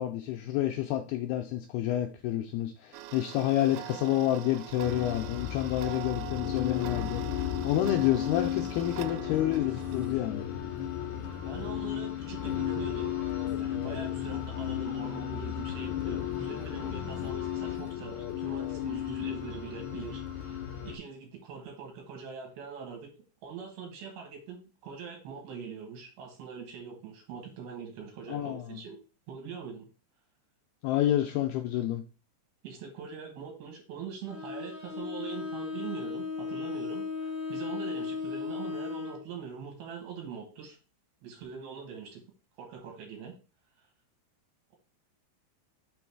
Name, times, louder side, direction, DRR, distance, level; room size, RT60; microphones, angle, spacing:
voice 1, 0.0-10.4 28.3-28.8 30.8-32.0, left 13 dB, 90° left, 4 dB, 2.2 m, -29 dB
Tick-tock, 2.9-10.1, right 13 dB, 90° right, 2.8 m, -43 dB
sound 1, 4.8-21.0, left 11 dB, 65° left, 2.0 m, -34 dB
voice 2, 11.4-13.1 13.6-20.6 20.8-23.1 23.4-29.0 29.3-29.9 32.6-40.8 41.2-42.2 42.6-43.3, right 6 dB, 65° right, 1 dB, 3.1 m, -43 dB
Bowed string instrument, 34.3-39.2, left 4 dB, 15° left, 2.8 m, -36 dB
6.2 x 3.9 x 4.7 m, 0.34 s
omnidirectional pair, 5.1 m